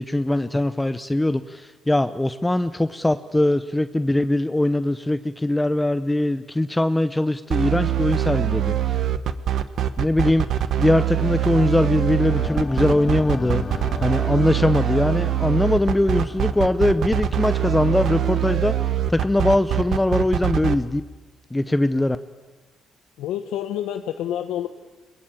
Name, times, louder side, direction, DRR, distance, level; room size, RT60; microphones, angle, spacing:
voice 1, 0.0-9.0 10.0-10.5 10.8-13.6 14.0-21.0 21.5-22.2, left 1 dB, 10° left, 12 dB, 0.7 m, -21 dB
sound 1, 7.5-20.7, right 11 dB, 65° right, 1.1 m, -23 dB
sound 2, 12.3-18.2, left 4 dB, 40° left, 3.1 m, -36 dB
voice 2, 23.2-24.7, left 11 dB, 90° left, 8 dB, 0.9 m, -28 dB
22.5 x 21.0 x 8.9 m, 1.3 s
cardioid pair, 90°, 0 cm